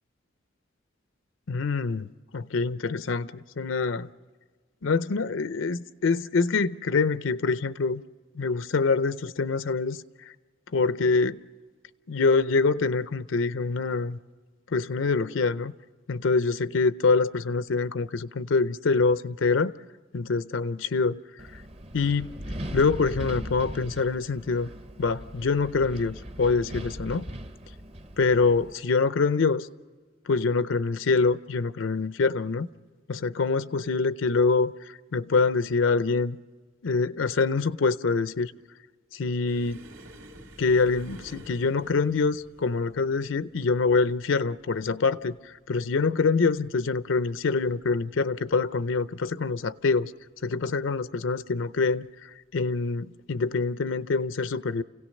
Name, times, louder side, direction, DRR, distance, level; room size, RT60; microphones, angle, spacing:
voice 1, 1.5-4.1 4.8-8.0 8.3-10.0 10.7-11.4 12.1-14.2 14.7-15.7 16.1-19.7 20.1-21.2 21.9-22.3 22.7-24.7 25.0-27.2 28.2-29.7 30.3-32.7 33.1-36.4 36.8-38.5 39.1-39.8 40.6-50.1 50.4-52.1 52.5-54.8, left 4 dB, 80° left, 0.6 m, -25 dB
Wind, 21.4-28.7, equal, 30° right, 0.8 m, -39 dB
sound 1, 39.5-46.7 47.0-47.4 47.7-47.9 48.7-49.3 50.2-50.4 51.8-52.0, right 1 dB, 80° right, 2.8 m, -51 dB
29.0 x 17.0 x 6.5 m
head